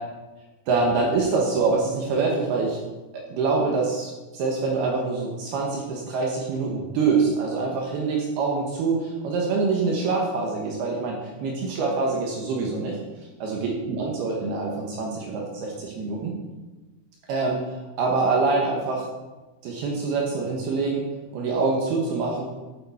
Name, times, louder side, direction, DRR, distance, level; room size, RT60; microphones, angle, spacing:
voice 1, 0.7-2.8 3.3-13.0 13.4-16.3 17.3-19.0 19.6-21.0 21.3-22.5, right 4 dB, 70° right, -1 dB, 2.6 m, -25 dB
9.4 x 8.3 x 4.2 m, 1.2 s
omnidirectional pair, 5.7 m